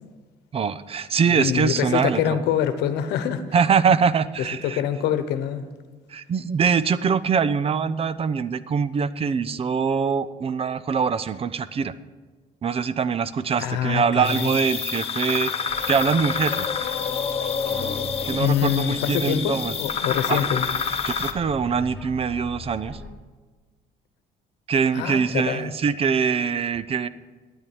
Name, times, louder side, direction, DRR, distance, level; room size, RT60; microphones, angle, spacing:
voice 1, 0.5-2.4 3.5-4.8 6.1-11.9 12.6-16.7 18.2-19.7 20.3-20.4 21.0-23.0 24.7-27.1, right 6 dB, 35° right, 16 dB, 0.5 m, -23 dB
voice 2, 1.3-3.4 4.6-5.6 13.6-14.5 18.3-20.7 24.9-25.7, left 9 dB, 85° left, 11 dB, 1.0 m, -25 dB
sound 1, 14.2-21.3, left 6 dB, 35° left, 1.0 m, -28 dB
sound 2, 15.7-23.1, left 2 dB, 5° left, 2.1 m, -41 dB
9.7 x 9.0 x 8.7 m, 1.4 s
cardioid pair, 110°, 17 cm